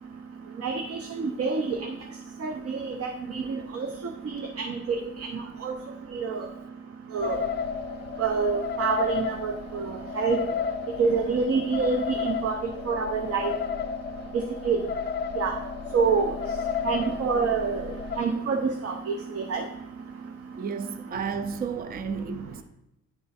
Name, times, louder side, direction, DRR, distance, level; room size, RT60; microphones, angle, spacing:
voice 1, 0.6-1.8 2.4-3.9 4.3-5.0 5.3-5.7 6.1-6.5 7.1-7.4 8.2-10.4 11.0-12.6 12.9-13.5 14.6-14.8 15.4-15.6 15.9-16.3 16.8-17.8 18.2-19.6, right 5 dB, 50° right, 0.8 m, -27 dB
sound 1, 7.2-18.2, left 6 dB, 35° left, 0.4 m, -33 dB
voice 2, 20.6-22.6, right 6 dB, 30° right, 0.5 m, -32 dB
10.5 x 3.5 x 4.2 m
cardioid pair, 90°, 30 cm